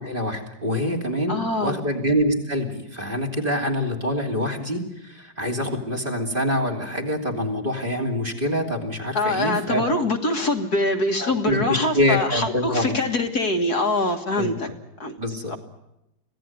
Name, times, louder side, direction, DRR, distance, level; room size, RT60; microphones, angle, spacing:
voice 1, 0.0-9.8 11.2-12.9 14.4-14.6 15.2-15.5, equal, 25° right, 0 dB, 3.2 m, -25 dB
voice 2, 1.3-1.8 9.1-14.7 15.0-15.1 15.5-15.6, left 2 dB, 55° left, 4 dB, 2.2 m, -24 dB
25.5 x 17.0 x 9.3 m, 0.86 s
omnidirectional pair, 2.0 m